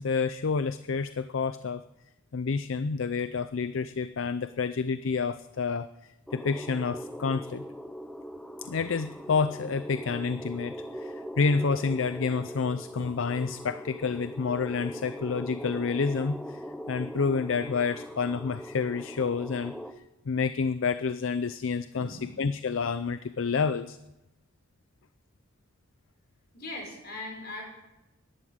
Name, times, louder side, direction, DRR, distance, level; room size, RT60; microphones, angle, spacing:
voice 1, 0.0-1.8 2.3-7.6 8.6-19.7 20.3-24.0, left 5 dB, 70° left, 13 dB, 0.5 m, -29 dB
sound 1, 6.3-19.9, equal, ahead, 0.7 m, -40 dB
voice 2, 21.9-22.4 26.5-27.6, left 2 dB, 50° left, 0 dB, 5.8 m, -40 dB
12.5 x 11.0 x 8.6 m, 0.95 s
head